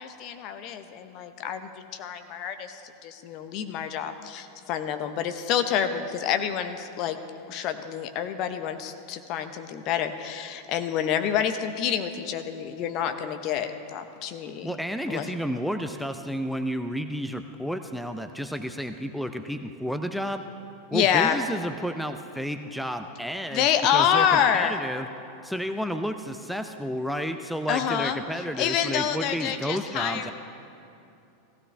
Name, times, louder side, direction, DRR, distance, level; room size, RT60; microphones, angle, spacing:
voice 1, 0.0-1.7 2.0-7.2 7.5-14.7 15.1-15.3 20.9-21.4 23.5-24.8 27.7-28.2 28.6-30.3, left 8 dB, 45° left, 8 dB, 0.9 m, -27 dB
voice 2, 14.6-20.4 20.9-23.7 23.9-25.1 25.4-30.3, equal, ahead, 7 dB, 0.6 m, -31 dB
16.5 x 15.5 x 3.4 m, 2.7 s
figure-of-eight pair, 90°, 0 cm